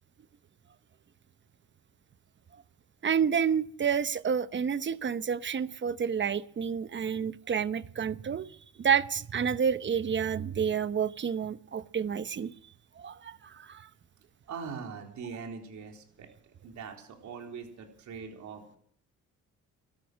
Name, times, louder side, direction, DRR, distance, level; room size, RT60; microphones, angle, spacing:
voice 1, 3.0-8.5 8.8-12.5 13.0-13.9, right 7 dB, 40° right, 14 dB, 0.9 m, -29 dB
voice 2, 14.5-16.3 16.6-18.8, right 5 dB, 70° right, 2 dB, 3.9 m, -42 dB
17.5 x 13.5 x 6.2 m, 0.63 s
cardioid pair, 90°, 30 cm